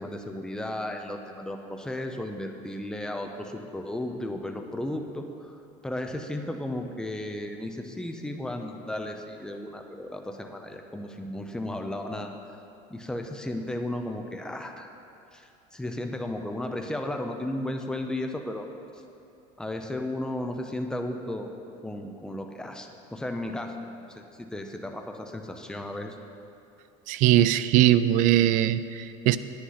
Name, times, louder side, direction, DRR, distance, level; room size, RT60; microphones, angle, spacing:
voice 1, 0.0-12.3 12.9-14.9 15.3-18.6 19.6-21.5 21.8-26.2, left 1 dB, 5° left, 4 dB, 0.6 m, -34 dB
voice 2, 27.1-29.4, right 13 dB, 55° right, 14 dB, 0.4 m, -21 dB
10.0 x 9.7 x 4.1 m, 2.7 s
cardioid pair, 150°, 16 cm